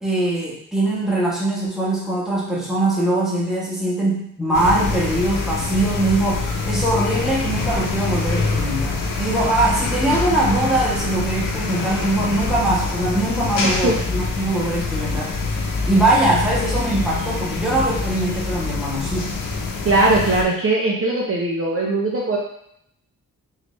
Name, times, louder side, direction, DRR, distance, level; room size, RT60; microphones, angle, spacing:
voice 1, 0.0-15.4 15.8-19.3, right 2 dB, ahead, -6 dB, 1.2 m, -22 dB
sound 1, 4.5-20.4, left 3 dB, 70° left, 0.7 m, -25 dB
voice 2, 19.8-22.4, right 2 dB, 40° right, -4 dB, 0.7 m, -19 dB
3.7 x 3.3 x 3.1 m, 0.72 s
wide cardioid pair, 135°, 34 cm